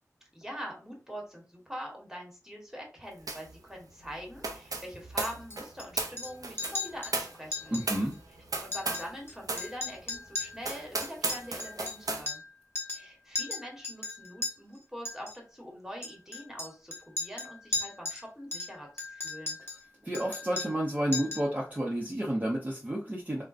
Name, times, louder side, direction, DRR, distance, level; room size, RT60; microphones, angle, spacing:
voice 1, 0.3-7.8 8.6-12.4 12.9-19.6, equal, 5° right, -1 dB, 1.2 m, -44 dB
sound 1, 3.3-3.5 3.8-9.1 9.4-9.7 10.1-10.2 10.6-12.2, right 3 dB, 85° right, 0.5 m, -35 dB
Chink clink, 5.2-5.8 6.2-6.3 6.6-7.1 7.5-7.8 8.1-8.2 8.6-9.3 9.6-12.5 12.8-13.1 13.4-14.5 15.1-15.3 16.0-18.2 18.5-19.8 20.1-20.9 21.1-21.5, left 3 dB, 40° left, 1.0 m, -36 dB
voice 2, 7.7-8.2 20.0-23.4, right 1 dB, 25° right, -4 dB, 0.7 m, -31 dB
3.6 x 2.1 x 2.4 m, 0.35 s
wide cardioid pair, 60°, 6 cm